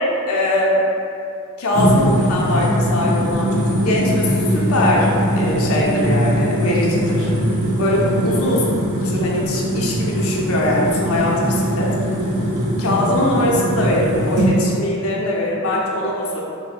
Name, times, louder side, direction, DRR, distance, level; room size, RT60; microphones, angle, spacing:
voice 1, 0.3-0.8 1.6-5.1 5.4-7.3 7.8-8.7 9.0-12.0 12.8-16.4, left 1 dB, 85° left, -3 dB, 0.5 m, -21 dB
sound 1, 1.7-14.5, equal, 90° right, 0.7 m, -20 dB
3.1 x 2.0 x 3.3 m, 2.6 s
head